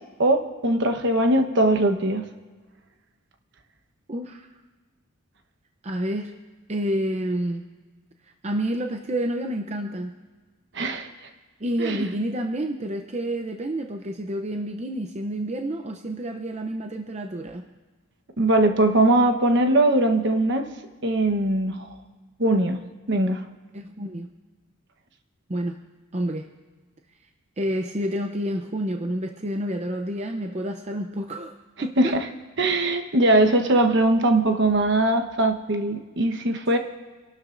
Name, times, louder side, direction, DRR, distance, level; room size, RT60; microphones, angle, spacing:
voice 1, 0.2-2.2 10.7-11.1 11.8-12.0 18.4-20.7 21.0-21.8 22.4-22.8 23.1-23.4 32.0-32.2 32.6-36.8, right 1 dB, 55° right, 6 dB, 1.1 m, -21 dB
voice 2, 4.1-4.5 5.8-6.3 6.7-7.7 8.4-10.2 11.6-17.6 23.7-24.3 25.5-25.8 26.1-26.5 27.6-31.5 31.8-32.2, right 1 dB, 30° right, 4 dB, 0.6 m, -29 dB
27.0 x 12.5 x 2.6 m, 1.4 s
head